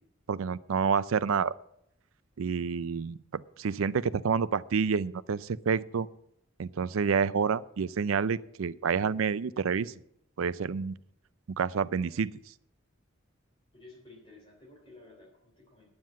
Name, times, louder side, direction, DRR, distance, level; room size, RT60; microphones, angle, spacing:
voice 1, 0.3-1.5 2.4-6.1 6.6-9.9 10.4-11.0 11.5-12.3, right 6 dB, 80° right, 17 dB, 0.4 m, -28 dB
voice 2, 13.7-15.9, left 2 dB, 25° left, -1 dB, 3.2 m, -53 dB
10.5 x 7.7 x 7.2 m, 0.78 s
head